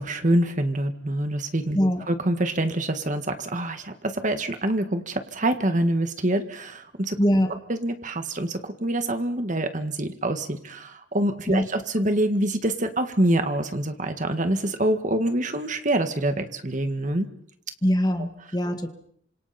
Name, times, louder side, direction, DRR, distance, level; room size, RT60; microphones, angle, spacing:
voice 1, 0.0-1.8 2.1-7.2 7.5-17.3 18.2-18.3, right 1 dB, 45° right, 8 dB, 1.8 m, -26 dB
voice 2, 7.2-7.5 11.5-11.6 17.8-18.9, equal, 20° left, 6 dB, 1.9 m, -22 dB
28.0 x 26.5 x 4.4 m, 0.67 s
head